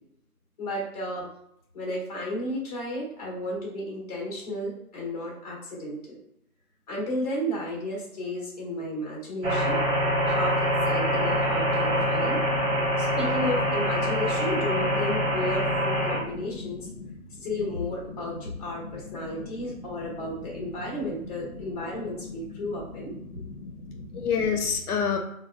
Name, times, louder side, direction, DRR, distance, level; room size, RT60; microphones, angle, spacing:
voice 1, 0.6-1.3 1.7-6.2 6.9-9.8 10.3-12.4 13.0-16.9 17.3-23.5 23.9-24.0, left 1 dB, 25° left, -3 dB, 1.0 m, -33 dB
sound 1, 9.4-16.2, equal, 50° right, 1.2 m, -25 dB
voice 2, 11.3-13.0 14.1-14.2 16.1-17.2 18.8-18.9 19.2-19.6 20.0-20.1 20.4-20.5 21.5-21.6 22.0-25.2, left 6 dB, 80° left, 3 dB, 0.7 m, -33 dB
4.4 x 2.3 x 2.2 m, 0.76 s
figure-of-eight pair, 150°, 44 cm